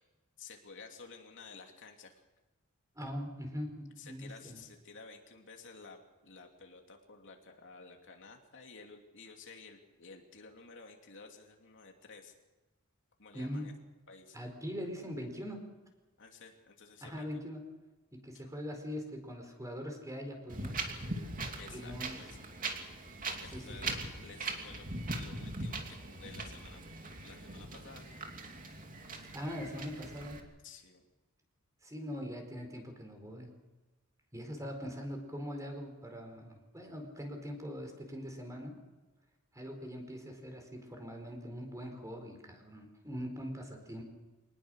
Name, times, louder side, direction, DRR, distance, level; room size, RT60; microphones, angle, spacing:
voice 1, 0.4-2.2 4.0-6.0 6.2-12.3 13.2-13.7 14.1-14.4 16.2-17.5 21.6-22.3 23.4-26.8 27.2-28.2 30.6-31.0, left 4 dB, 60° left, 2 dB, 2.9 m, -53 dB
voice 2, 2.9-4.6 13.3-13.8 14.3-15.7 17.0-17.6 18.1-20.8 21.7-22.1 23.5-23.9 29.3-30.4 31.8-33.5 34.3-38.8 39.5-44.0, equal, 15° right, 4 dB, 4.5 m, -42 dB
Wind, 20.5-30.4, right 2 dB, 40° right, 2.8 m, -41 dB
24.5 x 20.0 x 6.4 m, 1.1 s
head